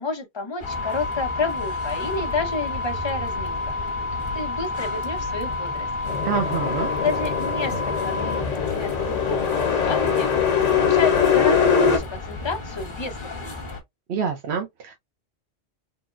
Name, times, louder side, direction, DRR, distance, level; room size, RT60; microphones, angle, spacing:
voice 1, 0.0-3.7 4.1-5.9 7.0-10.3 10.7-13.7, left 3 dB, 25° left, 0.7 m, -30 dB
sound 1, 0.6-8.4, left 3 dB, 65° left, 0.3 m, -30 dB
sound 2, 0.6-13.8, left 2 dB, 45° left, 1.3 m, -34 dB
sound 3, 6.1-12.0, left 7 dB, 80° left, 1.2 m, -22 dB
voice 2, 6.2-6.9 14.1-14.9, right 6 dB, 65° right, 0.9 m, -26 dB
3.8 x 2.1 x 2.4 m
omnidirectional pair, 1.2 m